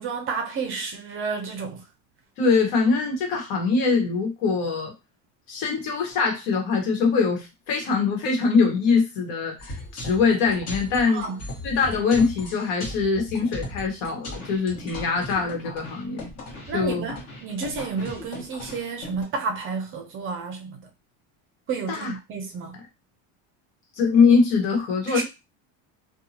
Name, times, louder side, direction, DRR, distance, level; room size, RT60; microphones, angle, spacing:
voice 1, 0.0-1.8 11.1-11.4 16.7-20.9 21.7-22.8 25.1-25.2, right 5 dB, 35° right, 0.5 m, -31 dB
voice 2, 2.4-4.9 5.5-11.2 11.6-16.2 16.7-17.1 21.9-22.1 24.0-25.2, left 5 dB, 70° left, 1.2 m, -23 dB
sound 1, 9.6-19.2, left 1 dB, 45° left, 1.2 m, -38 dB
2.7 x 2.2 x 2.7 m
cardioid pair, 150°, 37 cm